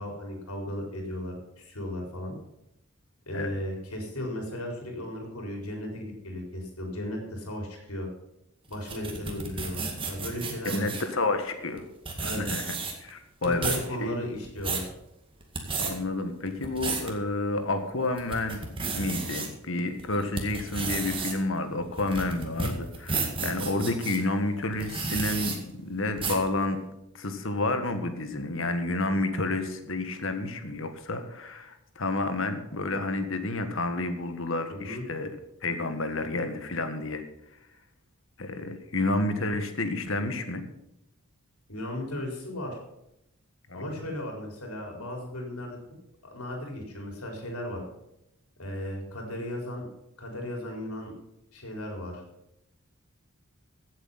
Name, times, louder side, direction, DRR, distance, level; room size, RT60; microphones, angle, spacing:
voice 1, 0.0-2.4 3.3-8.1 8.7-11.0 12.2-12.4 13.4-14.9 34.7-35.1 41.7-42.8 43.7-45.8 46.2-47.8 48.6-49.9 50.2-51.1 51.5-52.2, left 1 dB, 90° left, 1 dB, 4.5 m, -36 dB
sound 1, 8.7-11.1 11.8-11.9 12.0-13.1 13.4-13.9 14.3-14.9 15.4-15.9 16.5-17.1 17.6-17.7 18.2-19.5 20.0-24.2 24.7-25.6 26.2-26.5, right 4 dB, 25° right, 2.1 m, -32 dB
voice 2, 10.6-11.8 12.2-13.7 14.0-14.2 15.8-18.6 18.9-26.8 27.1-35.3 35.6-37.2 38.4-40.6 43.7-43.9, left 2 dB, 65° left, 8 dB, 1.6 m, -30 dB
16.0 x 8.1 x 5.8 m, 0.86 s
head